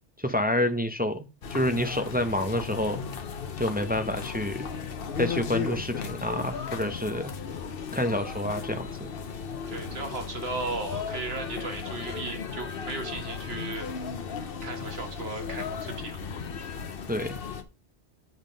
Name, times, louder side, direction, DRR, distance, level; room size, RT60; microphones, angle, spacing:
voice 1, 0.2-3.0 3.6-4.7 5.2-7.4 7.9-9.1 17.1-17.4, left 1 dB, 10° right, 0.5 m, -28 dB
sound 1, 1.4-17.6, left 6 dB, 55° left, 1.0 m, -36 dB
voice 2, 9.7-13.9 14.6-16.2, right 3 dB, 60° right, 1.7 m, -35 dB
8.0 x 3.6 x 5.1 m
omnidirectional pair, 1.2 m